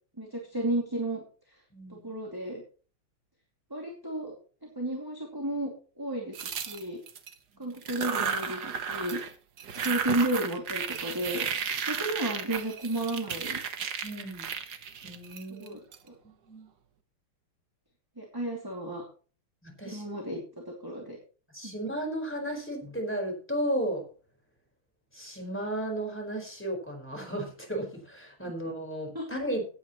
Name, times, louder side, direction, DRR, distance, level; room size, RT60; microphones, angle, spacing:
voice 1, 0.2-1.2 1.9-2.6 3.7-4.4 4.8-5.7 6.0-6.4 6.7-7.0 7.6-9.2 9.8-11.4 11.8-13.6 15.6-15.8 18.2-19.0 19.8-20.4 20.7-21.2 21.6-21.7 29.1-29.2, right 1 dB, 10° right, 0 dB, 2.4 m, -32 dB
voice 2, 1.7-2.1 7.5-7.7 14.0-14.5 15.0-15.7 16.5-16.7 19.6-20.1 21.5-24.0 25.1-29.8, right 1 dB, 5° left, 1 dB, 4.6 m, -34 dB
sound 1, 6.3-7.3 7.8-9.3 9.6-16.0, right 7 dB, 55° right, 1.6 m, -34 dB
17.0 x 9.8 x 3.1 m, 0.39 s
omnidirectional pair, 2.3 m